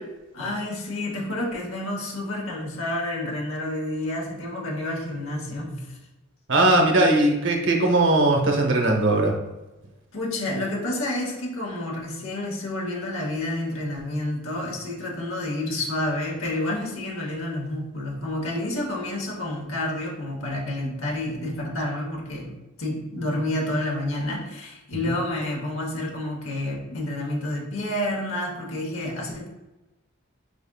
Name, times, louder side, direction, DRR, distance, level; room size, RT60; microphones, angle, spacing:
voice 1, 0.3-6.0 10.1-22.5 22.8-29.5, left 1 dB, 70° left, -1 dB, 0.9 m, -29 dB
voice 2, 6.5-9.3 25.0-25.2, right 2 dB, 55° right, 2 dB, 0.7 m, -19 dB
4.9 x 3.5 x 2.2 m, 1.0 s
head